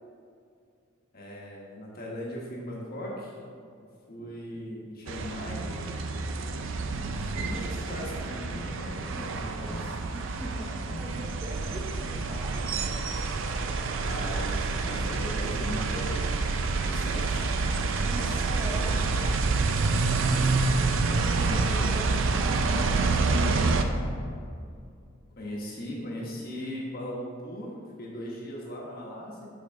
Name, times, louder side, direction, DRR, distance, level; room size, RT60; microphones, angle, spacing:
voice 1, 1.1-3.4 4.1-5.7 7.3-10.0 14.0-17.5 18.1-18.4 18.7-19.1 21.4-22.0 25.4-27.7 28.0-29.5, equal, 45° left, -3 dB, 1.3 m, -38 dB
sound 1, 4.2-4.6 5.6-6.0 7.1-7.5 8.5-9.0 9.7-10.2 10.9-11.2 12.1-12.5 13.6-13.9 15.0-15.2 16.1-16.5 17.2-17.5 18.5-18.8 19.7-20.0 21.0-21.3 21.8-22.1 22.9-23.3 23.6-23.7, left 1 dB, ahead, 1.4 m, -47 dB
sound 2, 5.1-23.8, right 3 dB, 65° right, 0.4 m, -28 dB
voice 2, 10.1-12.7 17.7-20.5 21.0-24.2, right 1 dB, 15° right, -2 dB, 0.6 m, -42 dB
6.0 x 5.8 x 3.5 m, 2.3 s
head